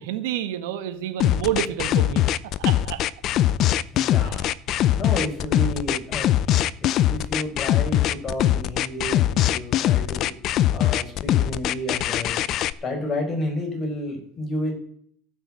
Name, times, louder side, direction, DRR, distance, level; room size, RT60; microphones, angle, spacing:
voice 1, 0.0-2.2 2.6-3.0 4.2-4.4 5.1-5.2 6.5-6.7, right 11 dB, 85° right, 9 dB, 1.4 m, -29 dB
sound 1, 1.2-12.7, left 12 dB, 50° left, 0.5 m, -21 dB
voice 2, 3.9-4.6 5.0-6.3 6.8-10.3 10.7-12.3 12.8-14.7, left 1 dB, 30° left, 1 dB, 5.2 m, -31 dB
14.5 x 6.2 x 7.7 m, 0.62 s
supercardioid pair, 115°, 0 cm